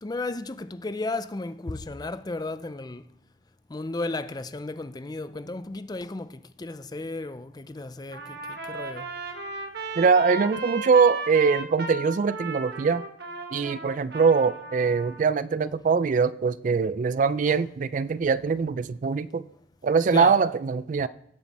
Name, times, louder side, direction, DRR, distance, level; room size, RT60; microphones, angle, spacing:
voice 1, 0.0-3.0 3.7-9.1 20.1-20.3, left 2 dB, 20° left, 0.4 m, -34 dB
Trumpet, 8.1-15.2, right 2 dB, 60° right, 1.5 m, -36 dB
voice 2, 10.0-13.0 13.5-19.5 19.8-21.1, right 5 dB, 45° right, 0.3 m, -22 dB
17.0 x 7.4 x 4.2 m
head